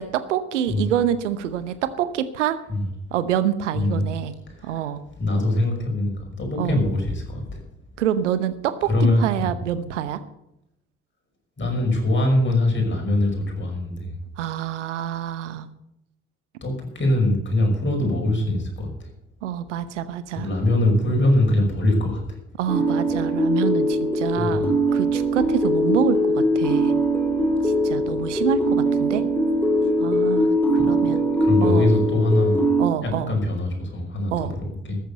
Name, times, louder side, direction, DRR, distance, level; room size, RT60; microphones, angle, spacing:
voice 1, 0.0-2.6 3.1-4.3 4.6-5.0 6.5-6.8 8.0-10.2 14.4-15.7 19.4-20.5 22.6-26.9 27.6-29.2 30.0-30.6 30.9-31.2 31.6-31.9 32.8-33.3 34.3-34.5, right 10 dB, 75° right, 14 dB, 1.0 m, -26 dB
voice 2, 3.7-4.1 4.5-4.8 5.2-7.6 8.9-9.5 11.6-14.2 16.6-19.1 20.3-22.2 24.4-24.7 30.7-31.1 31.4-32.6 33.0-34.3 34.6-35.0, left 1 dB, 30° left, 1 dB, 5.6 m, -22 dB
sound 1, 22.7-32.9, equal, 5° left, 2.9 m, -21 dB
14.0 x 9.5 x 6.8 m, 0.84 s
figure-of-eight pair, 45°, 36 cm